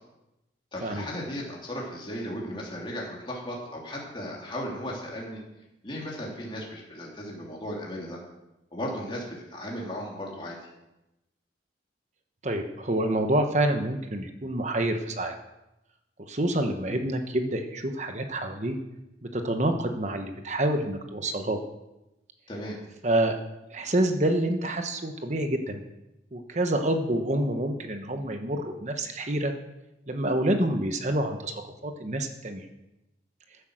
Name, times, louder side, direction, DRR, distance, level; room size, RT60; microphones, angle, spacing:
voice 1, 0.7-5.4 5.8-8.2 8.7-10.6 22.5-22.8, equal, 25° left, -3 dB, 2.8 m, -36 dB
voice 2, 12.4-15.3 16.3-18.8 19.2-21.6 23.0-23.4 23.7-25.8 26.3-29.5 30.1-32.6, right 1 dB, 40° right, 6 dB, 1.2 m, -27 dB
15.5 x 8.3 x 6.4 m, 0.94 s
head